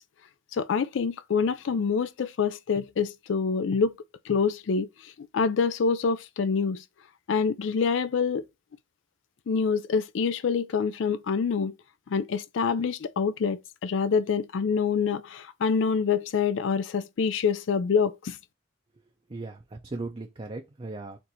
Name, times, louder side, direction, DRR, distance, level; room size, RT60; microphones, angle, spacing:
voice 1, 0.5-3.9 4.3-4.9 5.3-6.8 7.3-8.4 9.5-11.7 12.1-18.4, left 5 dB, 65° left, 0.4 m, -26 dB
voice 2, 19.3-21.2, right 2 dB, 30° right, 0.5 m, -37 dB
4.4 x 2.6 x 4.0 m
head